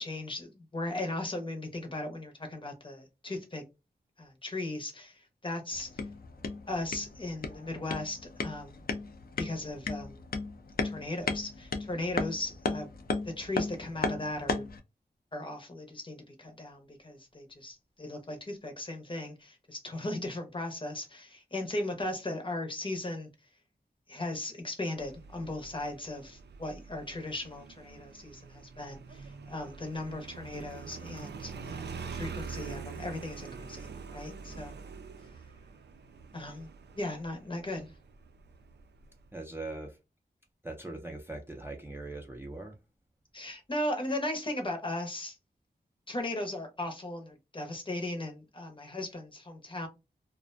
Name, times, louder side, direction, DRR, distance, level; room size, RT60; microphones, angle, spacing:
voice 1, 0.0-3.6 4.2-6.0 6.7-8.8 9.4-10.2 10.8-12.9 13.2-14.6 15.3-23.3 24.1-34.7 36.3-37.9 43.3-45.4 46.1-49.9, left 1 dB, 30° left, 0.7 m, -37 dB
sound 1, 5.7-14.8, left 3 dB, 60° left, 0.4 m, -36 dB
Motorcycle, 25.0-39.3, right 5 dB, 80° right, 0.4 m, -45 dB
voice 2, 34.4-34.7 39.3-40.0 40.6-42.8, right 2 dB, 15° right, 0.4 m, -41 dB
2.4 x 2.1 x 2.4 m
wide cardioid pair, 110°, 17 cm